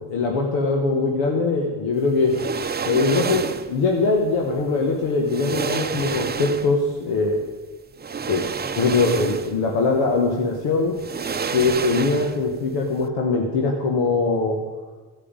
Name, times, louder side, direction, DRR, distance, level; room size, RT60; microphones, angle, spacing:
voice 1, 0.0-2.3 2.8-7.4 8.3-8.4 8.8-11.0 11.5-14.6, left 3 dB, 90° left, 0 dB, 1.5 m, -22 dB
sound 1, 2.2-3.8 4.8-4.9 5.3-6.9 8.0-9.7 10.0-10.2 11.0-12.6 12.8-13.0, right 6 dB, 25° right, 0.7 m, -29 dB
14.5 x 5.1 x 8.8 m, 1.3 s
supercardioid pair, 75°, 43 cm